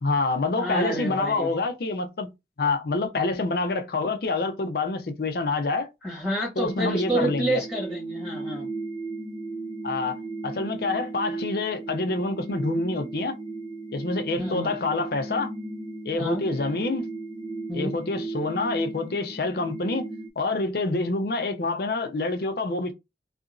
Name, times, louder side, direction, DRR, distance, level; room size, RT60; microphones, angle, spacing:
voice 1, 0.0-2.3 2.6-5.9 6.6-7.6 9.8-13.3 13.9-15.5 16.1-17.1 17.7-20.0 20.4-22.9, left 3 dB, 60° left, 0.5 m, -27 dB
voice 2, 0.6-1.5 6.0-8.6 14.4-14.7 16.2-16.4 17.7-17.9, right 1 dB, 5° right, 1.4 m, -29 dB
sound 1, 6.6-20.3, right 3 dB, 25° right, 0.5 m, -35 dB
2.8 x 2.5 x 2.5 m
head